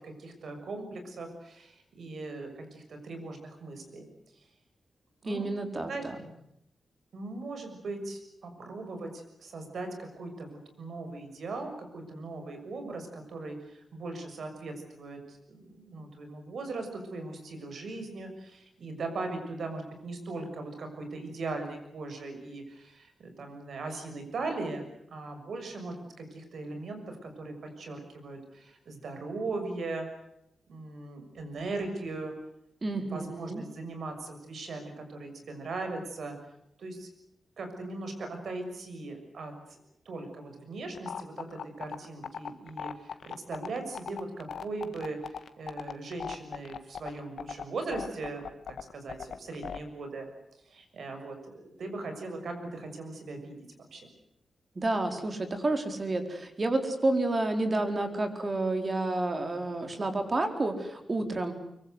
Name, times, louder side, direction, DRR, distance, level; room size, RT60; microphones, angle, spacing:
voice 1, 0.0-4.0 5.2-5.5 5.9-6.0 7.1-30.1 30.7-32.3 32.9-36.4 36.8-37.1 37.6-39.8 40.0-48.5 48.9-50.3 50.6-53.6 53.9-54.1, right 3 dB, 70° right, 6 dB, 6.5 m, -39 dB
voice 2, 5.2-6.2 32.8-33.6 54.8-61.5, right 2 dB, 30° right, 6 dB, 4.2 m, -30 dB
sound 1, 40.9-49.8, left 7 dB, 75° left, 1.6 m, -38 dB
24.5 x 23.5 x 8.0 m, 0.79 s
wide cardioid pair, 120°, 0 cm